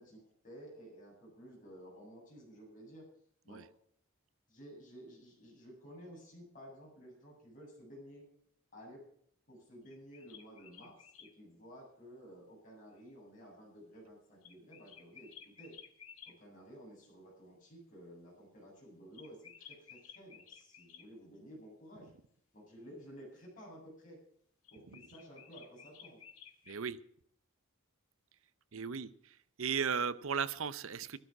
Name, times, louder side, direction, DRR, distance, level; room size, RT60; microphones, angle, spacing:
voice 1, 0.0-3.1 3.4-3.6 4.5-8.3 8.7-9.0 9.5-15.8 16.3-22.1 22.5-24.2 24.7-26.2, equal, 40° left, -3 dB, 7.9 m, -53 dB
sound 1, 9.8-11.3 14.4-16.4 19.1-21.1 24.6-26.8, left 8 dB, 85° left, 2.0 m, -55 dB
voice 2, 26.7-27.0 28.7-31.2, right 6 dB, 70° right, 16 dB, 0.7 m, -36 dB
12.5 x 12.5 x 6.0 m, 0.64 s
head